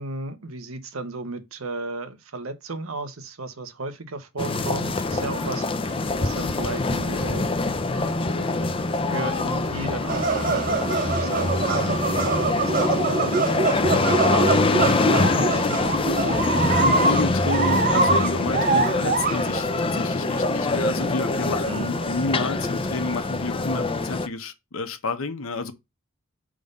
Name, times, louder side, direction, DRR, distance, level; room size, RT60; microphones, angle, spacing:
voice 1, 0.0-7.4 8.3-14.8 15.1-15.9 21.6-21.9, right 3 dB, 85° right, 1.0 m, -34 dB
sound 1, 4.4-24.3, left 2 dB, 25° left, 0.5 m, -24 dB
sound 2, 10.1-19.6 19.9-20.0 20.4-20.5 21.0-21.1 21.4-21.5 22.0-22.1, right 4 dB, 40° right, 0.7 m, -24 dB
voice 2, 16.6-25.7, left 3 dB, 90° left, 1.0 m, -30 dB
5.2 x 3.8 x 5.4 m
head